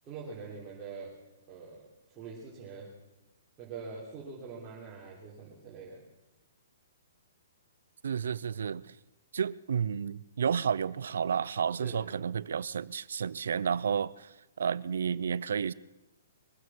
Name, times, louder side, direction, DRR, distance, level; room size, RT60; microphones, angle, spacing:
voice 1, 0.0-1.2 1.5-1.9 2.2-2.9 3.6-6.1 11.8-12.1, right 4 dB, 25° right, -6 dB, 3.8 m, -44 dB
voice 2, 8.0-8.9 9.3-15.7, right 7 dB, 75° right, 20 dB, 0.5 m, -31 dB
23.0 x 9.4 x 6.1 m, 1.0 s
hypercardioid pair, 140°, 0 cm